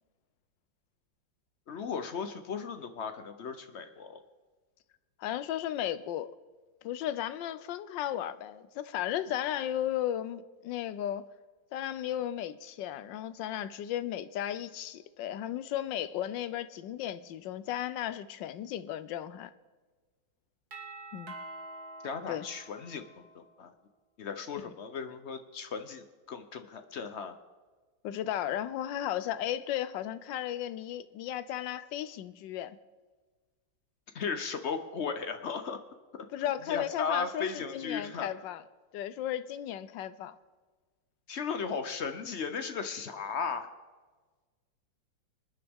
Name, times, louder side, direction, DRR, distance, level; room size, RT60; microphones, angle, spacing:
voice 1, 1.7-4.2 22.0-23.7 24.2-27.4 34.1-35.8 36.1-38.3 41.3-43.7, left 5 dB, 60° left, 8 dB, 0.7 m, -36 dB
voice 2, 5.2-6.3 6.8-11.3 11.7-19.5 21.1-21.4 22.3-22.5 24.6-24.7 28.0-32.8 36.3-38.6 38.9-40.3, left 11 dB, 80° left, 14 dB, 1.3 m, -35 dB
Doorbell, 20.7-23.5, right 2 dB, 55° right, 2.2 m, -46 dB
27.0 x 9.9 x 3.6 m, 1.4 s
omnidirectional pair, 2.0 m